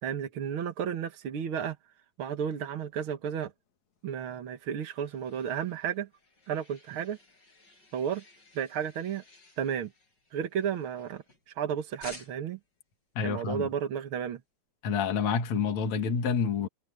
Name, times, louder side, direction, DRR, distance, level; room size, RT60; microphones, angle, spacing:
voice 1, 0.0-1.8 2.2-3.5 4.0-6.1 6.5-7.2 7.9-8.2 8.5-9.2 9.6-9.9 10.3-12.6 13.2-14.4, right 8 dB, 50° right, 1.6 m, -33 dB
sound 1, 4.3-11.6 12.0-12.7, left 3 dB, 30° left, 6.3 m, -54 dB
voice 2, 13.2-13.7 14.8-16.7, left 6 dB, 55° left, 3.3 m, -28 dB
omnidirectional pair, 4.0 m